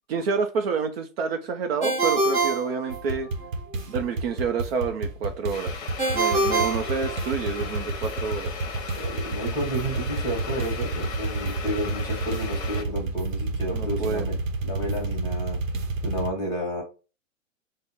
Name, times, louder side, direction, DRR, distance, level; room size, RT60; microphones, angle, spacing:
voice 1, 0.1-3.3 3.9-8.6 13.7-14.3, right 5 dB, 50° right, 5 dB, 0.6 m, -29 dB
Ringtone, 1.8-3.5 6.0-7.7, right 3 dB, 10° right, 0.4 m, -25 dB
sound 1, 2.9-16.3, right 3 dB, 85° right, 0.9 m, -30 dB
sound 2, 5.5-12.8, left 6 dB, 30° left, 0.9 m, -37 dB
voice 2, 9.0-14.3 14.6-15.6 16.0-16.8, equal, 10° left, 1 dB, 1.3 m, -31 dB
3.4 x 2.1 x 4.2 m, 0.32 s
hypercardioid pair, 140°, 39 cm